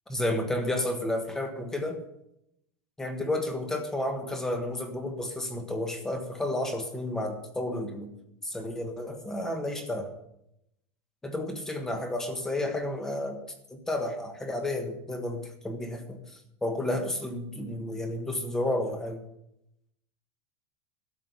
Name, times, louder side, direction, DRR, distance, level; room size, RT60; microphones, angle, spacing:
voice 1, 0.1-2.0 3.0-8.1 8.4-10.1 11.2-13.4 13.7-16.2 16.6-19.2, left 1 dB, 5° left, 6 dB, 1.4 m, -31 dB
12.0 x 7.5 x 8.1 m, 0.81 s
supercardioid pair, 175°, 7 cm